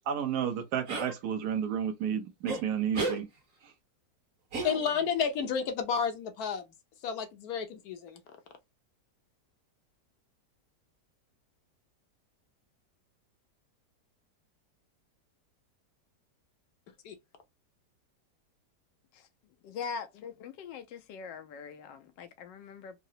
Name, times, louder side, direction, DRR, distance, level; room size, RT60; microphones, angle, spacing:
voice 1, 0.1-3.3 3.6-3.7, right 8 dB, 70° right, 1.2 m, -31 dB
sound 1, 0.9-1.1 2.5-2.6 2.9-3.2 4.5-5.2, right 3 dB, 50° right, 1.5 m, -33 dB
voice 2, 4.6-6.6 7.0-8.2 17.0-17.2, left 6 dB, 70° left, 1.0 m, -31 dB
voice 3, 19.6-23.0, left 6 dB, 90° left, 1.3 m, -42 dB
3.9 x 2.0 x 2.6 m
omnidirectional pair, 1.9 m